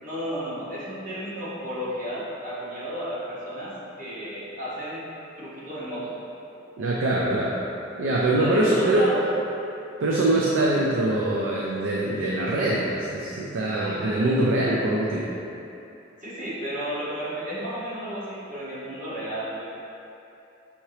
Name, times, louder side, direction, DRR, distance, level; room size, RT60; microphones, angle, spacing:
voice 1, 0.0-5.0 5.4-6.1 8.4-9.2 16.2-19.6, equal, 40° right, -11 dB, 1.4 m, -32 dB
voice 2, 6.8-7.6 8.0-9.1 10.0-15.3, right 1 dB, 80° right, -4 dB, 0.5 m, -23 dB
5.7 x 2.8 x 3.2 m, 2.8 s
head